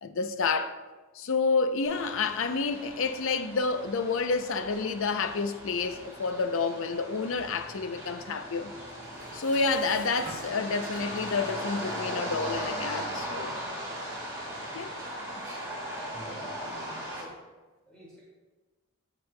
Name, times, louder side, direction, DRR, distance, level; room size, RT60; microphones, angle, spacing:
voice 1, 0.0-0.7 1.2-8.7 9.3-13.6 14.7-14.9, left 4 dB, 65° left, 0.6 m, -29 dB
sound 1, 1.9-17.2, equal, 15° right, 2.7 m, -38 dB
Dishes pots and pans, 9.0-11.5, right 2 dB, 40° right, 1.6 m, -47 dB
voice 2, 16.1-17.3 17.9-18.2, equal, 5° left, 2.1 m, -50 dB
15.0 x 6.0 x 2.2 m
head